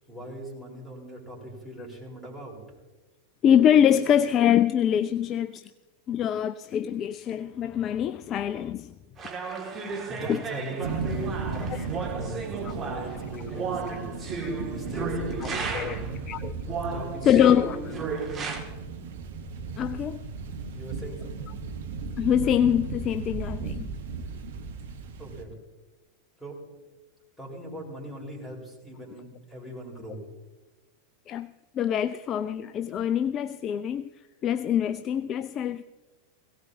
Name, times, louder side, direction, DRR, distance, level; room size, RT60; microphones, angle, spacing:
voice 1, 0.1-2.6 9.8-11.4 11.7-16.1 16.9-18.0 20.7-21.5 25.2-25.6 26.4-26.6 27.4-30.2, right 1 dB, ahead, 4.5 m, -40 dB
voice 2, 3.4-5.6 6.1-8.9 10.3-10.4 11.7-11.9 14.4-14.5 15.7-16.0 16.3-16.5 17.2-17.8 19.8-20.2 22.2-23.9 31.3-31.5 31.8-34.1 34.4-35.8, left 9 dB, 30° left, 0.4 m, -24 dB
sound 1, 9.2-16.1 16.7-18.6, right 4 dB, 25° right, 2.3 m, -34 dB
sound 2, 10.8-25.4, right 4 dB, 60° right, 1.3 m, -36 dB
18.0 x 17.0 x 2.8 m
figure-of-eight pair, 90°, 0 cm